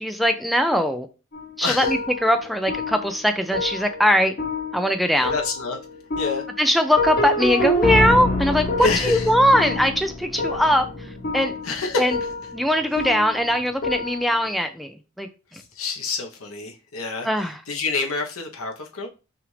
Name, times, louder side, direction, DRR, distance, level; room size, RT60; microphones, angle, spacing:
voice 1, 0.0-1.1 1.6-4.3 4.7-5.3 6.6-10.9 11.3-11.6 12.0-12.2 12.5-15.6 17.2-17.6, equal, ahead, 0.4 m, -21 dB
sound 1, 1.3-14.5, left 2 dB, 45° left, 0.9 m, -27 dB
voice 2, 1.6-1.9 5.2-5.8 6.2-6.4 8.8-9.3 11.6-12.1 15.5-17.3 17.7-19.1, left 4 dB, 85° left, 1.1 m, -27 dB
5.7 x 2.6 x 3.3 m
head